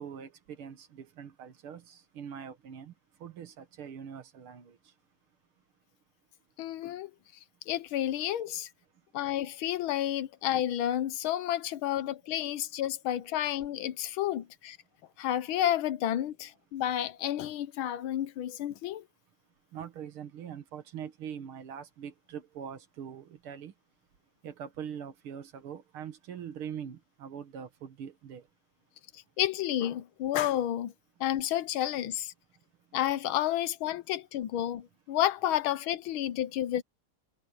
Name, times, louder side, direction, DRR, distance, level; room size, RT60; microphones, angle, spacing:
voice 1, 0.0-5.0 8.9-9.1 19.5-23.8 24.4-28.5 32.5-33.0, right 8 dB, 85° right, 2.4 m, -43 dB
voice 2, 6.6-7.1 7.7-8.7 9.1-14.8 15.2-19.0 29.1-30.9 31.2-32.3 32.9-36.8, left 12 dB, 75° left, 1.6 m, -31 dB
omnidirectional pair, 2.3 m